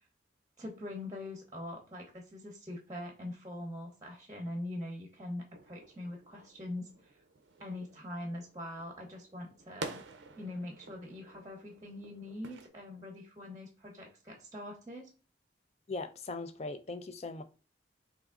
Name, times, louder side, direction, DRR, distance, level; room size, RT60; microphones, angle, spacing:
voice 1, 0.6-7.2 7.6-10.0 10.4-15.1, left 1 dB, 20° right, 0.8 m, -43 dB
sound 1, 5.5-12.7, right 3 dB, 80° right, 0.5 m, -49 dB
voice 2, 15.9-17.4, left 3 dB, 35° left, 0.4 m, -39 dB
3.5 x 2.9 x 3.6 m
head